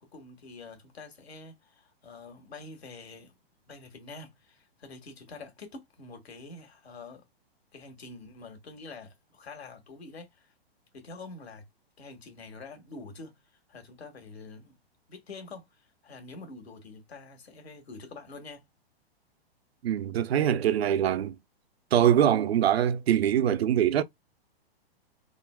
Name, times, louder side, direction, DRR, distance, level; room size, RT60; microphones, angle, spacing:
voice 1, 0.0-3.3 3.7-7.2 7.7-10.5 10.9-11.6 12.0-13.4 13.7-14.8 15.1-18.6, left 3 dB, 85° left, 1.4 m, -46 dB
voice 2, 19.8-21.4 21.9-24.0, right 10 dB, 75° right, 0.5 m, -23 dB
3.7 x 2.1 x 2.2 m
hypercardioid pair, 130°, 31 cm